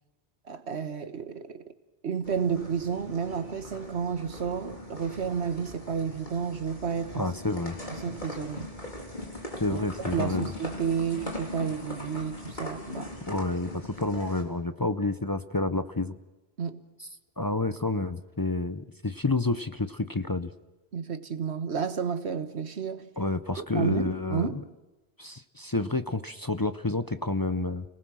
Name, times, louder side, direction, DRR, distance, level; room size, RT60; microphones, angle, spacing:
voice 1, 0.4-1.6 2.0-7.3 7.9-8.7 9.7-13.1 16.6-16.8 20.9-23.1 23.6-24.6, right 6 dB, 85° right, 1.6 m, -31 dB
sound 1, 2.2-14.4, left 1 dB, 45° left, 3.7 m, -40 dB
voice 2, 7.1-7.8 9.6-10.4 13.3-16.1 17.4-20.5 23.2-24.5 25.2-27.8, left 2 dB, 25° left, 0.7 m, -29 dB
30.0 x 19.0 x 6.3 m
omnidirectional pair, 1.1 m